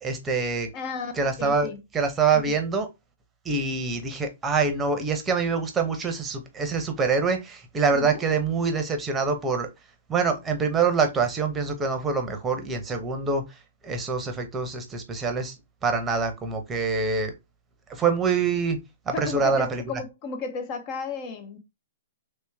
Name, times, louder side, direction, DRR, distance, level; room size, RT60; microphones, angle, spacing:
voice 1, 0.0-0.7 1.2-2.9 3.4-9.7 10.1-13.4 13.8-15.5 15.8-17.3 17.9-18.8 19.1-19.8, right 5 dB, 15° right, 0.9 m, -25 dB
voice 2, 0.7-1.8 2.3-2.6 7.9-8.3 19.1-21.6, left 5 dB, 35° left, 1.0 m, -33 dB
3.2 x 3.0 x 3.5 m
hypercardioid pair, 135°, 0 cm